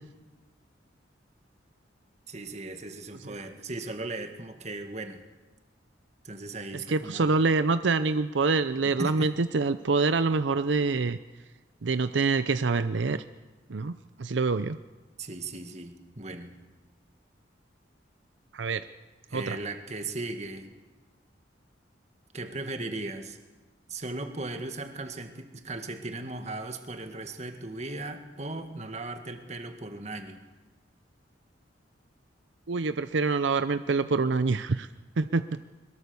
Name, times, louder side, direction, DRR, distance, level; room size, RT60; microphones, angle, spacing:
voice 1, 2.3-5.2 6.2-7.3 8.8-9.3 15.2-16.5 19.3-20.7 22.3-23.4 23.9-30.4, right 2 dB, 35° right, 6 dB, 1.9 m, -37 dB
voice 2, 6.7-11.2 11.8-13.2 13.7-13.9 14.2-14.8 18.5-18.8 19.3-19.6 32.7-34.9 35.2-35.4, right 4 dB, 75° right, 11 dB, 0.6 m, -26 dB
22.5 x 21.5 x 7.0 m, 1.2 s
head